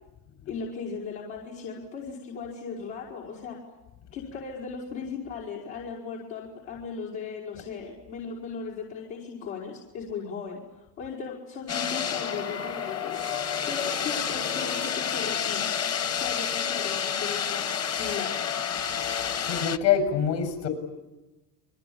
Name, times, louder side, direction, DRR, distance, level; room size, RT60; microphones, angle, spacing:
voice 1, 0.5-3.6 4.1-15.6 16.2-18.4, left 5 dB, 80° left, -3 dB, 5.5 m, -37 dB
sound 1, 11.7-19.8, left 8 dB, 35° left, 1.2 m, -29 dB
voice 2, 19.4-20.7, left 8 dB, 60° left, 7 dB, 7.5 m, -25 dB
29.5 x 23.0 x 8.7 m, 1.1 s
cardioid pair, 125°, 46 cm